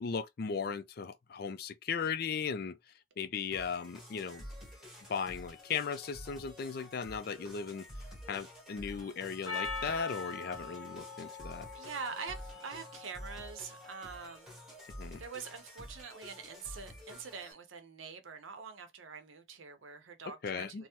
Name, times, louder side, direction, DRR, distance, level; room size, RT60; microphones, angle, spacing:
voice 1, 0.0-2.8 3.2-4.4 5.1-7.8 8.3-11.7 15.0-15.2 20.4-20.8, left 6 dB, 50° left, 0.3 m, -37 dB
sound 1, 3.5-17.5, equal, ahead, 1.1 m, -49 dB
Percussion, 9.5-14.1, left 4 dB, 85° left, 0.7 m, -43 dB
voice 2, 11.7-14.5 15.2-20.9, right 5 dB, 75° right, 0.7 m, -44 dB
3.3 x 2.0 x 2.9 m
head